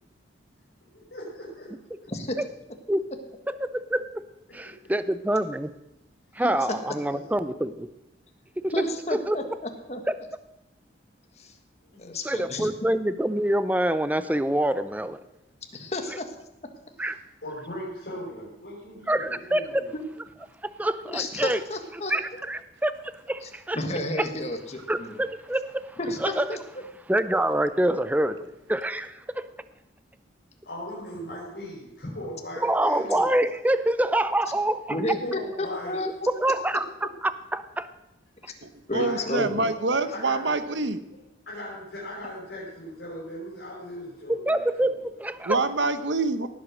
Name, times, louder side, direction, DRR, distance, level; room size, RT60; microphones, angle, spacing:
voice 1, 0.9-1.7 11.9-12.2 17.4-19.9 30.6-33.4 35.2-36.0 38.9-39.3 40.1-40.6 41.5-45.1, left 1 dB, 60° left, 5.6 m, -38 dB
voice 2, 2.1-2.4 6.4-6.5 8.7-9.5 9.9-10.0 11.4-11.6 12.0-12.7 15.7-16.4 19.9-20.0 21.1-22.1 23.4-25.2 26.0-26.6 32.0-32.2 34.9-36.3 38.4-38.5 38.9-39.7, left 1 dB, 35° left, 1.6 m, -31 dB
voice 3, 3.6-4.2 4.5-5.7 6.4-7.9 8.6-8.7 9.1-9.4 12.2-15.2 17.0-17.2 19.1-19.8 20.8-21.6 22.1-23.8 24.9-25.9 26.2-26.4 27.1-28.4 28.7-29.5 32.6-35.0 36.3-37.9 44.3-45.6, right 1 dB, 10° right, 0.5 m, -26 dB
voice 4, 38.6-41.0 45.4-46.5, right 3 dB, 80° right, 1.1 m, -26 dB
18.0 x 8.0 x 6.3 m
head